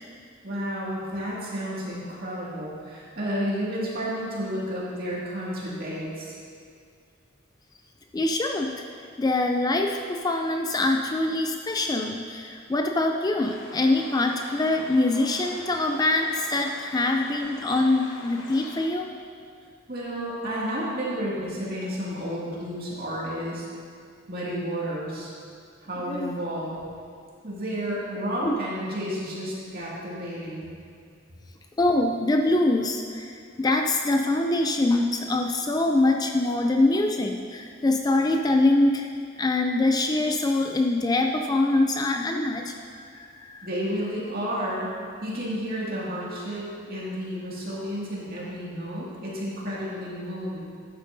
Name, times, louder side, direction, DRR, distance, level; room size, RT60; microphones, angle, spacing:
voice 1, 0.4-6.3 19.9-23.7 24.3-25.3 25.8-26.7 27.4-30.7 43.6-50.6, equal, 50° right, -6 dB, 2.2 m, -31 dB
voice 2, 8.1-8.7 9.2-19.1 26.1-26.3 28.4-28.5 31.8-39.1 39.4-43.7, left 2 dB, 20° left, 3 dB, 0.3 m, -24 dB
sound 1, 13.4-18.9, left 2 dB, 65° left, 1.1 m, -44 dB
12.0 x 8.9 x 2.7 m, 2.2 s
head